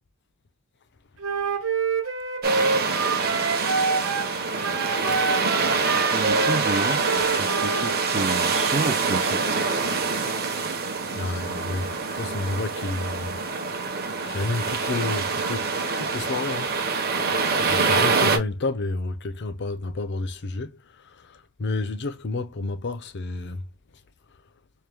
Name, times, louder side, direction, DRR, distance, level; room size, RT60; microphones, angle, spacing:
Wind instrument woodwind instrument, 1.2-4.3 4.6-8.0, right 3 dB, 65° right, 1.1 m, -27 dB
sound 1, 2.4-18.4, right 4 dB, 45° right, 0.9 m, -25 dB
voice 1, 6.1-7.1 7.4-9.4, right 3 dB, 30° right, 0.4 m, -30 dB
voice 2, 11.1-13.3 13.7-13.8 14.3-16.8 17.6-23.7, left 3 dB, 50° left, 0.6 m, -30 dB
4.6 x 2.2 x 3.4 m
head